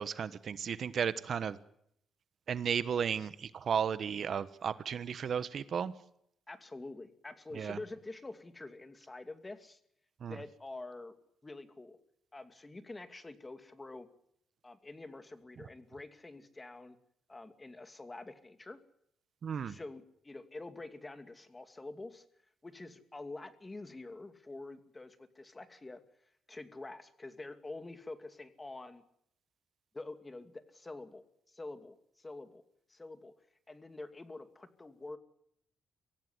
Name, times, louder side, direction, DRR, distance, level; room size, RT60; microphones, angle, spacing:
voice 1, 0.0-1.6 2.5-5.9 7.5-7.8 10.2-10.4 19.4-19.7, right 7 dB, 55° right, 14 dB, 1.1 m, -34 dB
voice 2, 6.5-9.8 10.3-11.1 11.4-12.0 12.3-14.1 14.6-17.0 17.3-18.8 19.6-22.2 22.6-26.0 26.5-29.0 29.9-32.6 32.9-33.3 33.7-35.2, left 2 dB, 20° left, 9 dB, 2.6 m, -47 dB
24.5 x 16.5 x 9.7 m, 0.75 s
cardioid pair, 90°, 0 cm